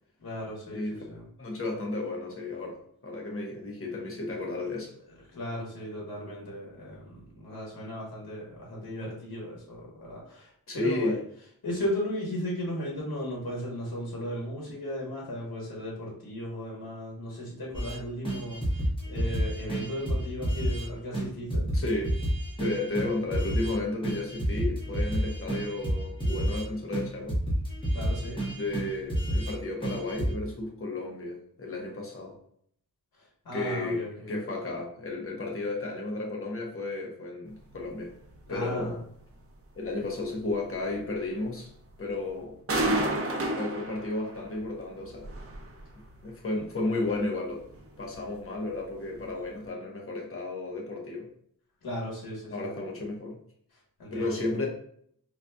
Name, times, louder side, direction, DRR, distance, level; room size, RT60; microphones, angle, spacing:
voice 1, 0.2-1.2 5.3-11.2 11.6-21.7 27.9-28.5 33.1-34.3 38.5-39.0 51.8-52.8 53.7-54.4, equal, 70° left, -4 dB, 1.2 m, -36 dB
voice 2, 1.4-5.0 10.7-11.2 21.7-22.2 22.6-27.4 28.6-32.4 33.5-38.1 38.5-38.9 39.8-41.7 42.0-42.5 43.5-45.3 46.2-47.6 48.0-51.3 52.5-53.4 54.1-54.7, left 2 dB, 35° left, -1 dB, 0.8 m, -33 dB
sound 1, 17.7-18.0 18.3-20.9 21.1-21.3 21.5-23.8 24.0-26.7 26.9-29.5 29.8-30.3, equal, 15° left, 1.0 m, -29 dB
sound 2, 37.7-37.9 38.3-38.5 38.8-38.9 39.3-39.4 39.8-39.9 40.2-40.4 40.8-41.4 41.9-42.1 42.4-42.5 42.7-44.6 45.0-46.2 46.5-46.7 47.0-47.2 47.6-48.2 48.6-48.8 49.1-49.3 49.6-49.7, right 1 dB, 40° right, 0.6 m, -32 dB
3.9 x 2.6 x 2.2 m, 0.65 s
wide cardioid pair, 130°, 37 cm